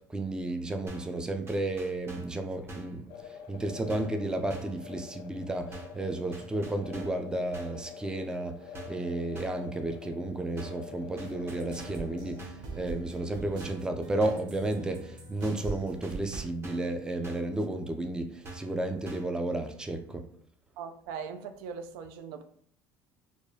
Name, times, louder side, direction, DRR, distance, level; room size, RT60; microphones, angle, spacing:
voice 1, 0.0-20.3, right 2 dB, 10° right, 0.3 m, -33 dB
sound 1, 0.9-1.2 1.5-2.4 2.7-3.0 3.9-4.2 4.5-4.8 5.7-6.0 6.3-7.3 7.5-7.9 8.7-9.1 9.4-9.7 10.6-10.9 11.2-12.1 12.4-12.7 13.6-13.9 14.2-14.5 15.4-15.7 16.0-17.0 17.2-17.6 18.4-18.8 19.1-19.4, right 2 dB, 30° right, 0.8 m, -45 dB
sound 2, 3.1-12.4, left 7 dB, 70° left, 0.5 m, -47 dB
sound 3, 11.1-16.4, right 3 dB, 55° right, 0.9 m, -43 dB
voice 2, 20.8-22.4, right 6 dB, 85° right, 0.4 m, -40 dB
4.6 x 2.3 x 2.7 m
supercardioid pair, 105°, 9 cm